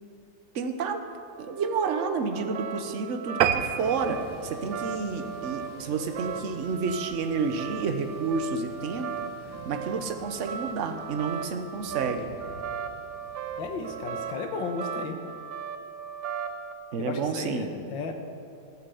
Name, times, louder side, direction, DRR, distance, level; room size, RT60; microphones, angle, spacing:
voice 1, 0.5-1.0 1.4-9.1 9.7-12.3 16.9-17.7, right 5 dB, 50° right, 6 dB, 1.0 m, -30 dB
sound 1, 1.4-16.7, right 7 dB, 65° right, 1.3 m, -38 dB
sound 2, 3.4-6.2 6.6-6.8 7.3-7.4 7.7-7.8 8.0-8.1, right 10 dB, 80° right, 0.8 m, -29 dB
Thunder / Rain, 3.7-14.5, equal, 15° right, 1.6 m, -50 dB
voice 2, 13.6-15.2 17.0-18.1, left 4 dB, 70° left, 5 dB, 1.9 m, -34 dB
15.0 x 8.7 x 7.0 m, 2.5 s
omnidirectional pair, 2.2 m